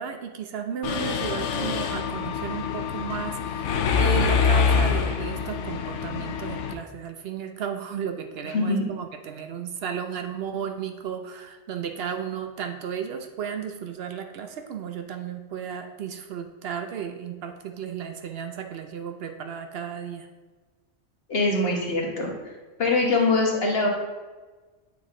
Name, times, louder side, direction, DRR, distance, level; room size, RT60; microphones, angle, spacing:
voice 1, 0.0-20.3, right 8 dB, 65° right, 5 dB, 0.7 m, -34 dB
Mechanisms, 0.8-6.7, left 6 dB, 80° left, 0.9 m, -25 dB
voice 2, 8.4-8.9 21.3-22.3 22.8-23.9, left 2 dB, 55° left, 0 dB, 1.4 m, -23 dB
8.9 x 3.6 x 3.6 m, 1.3 s
omnidirectional pair, 1.2 m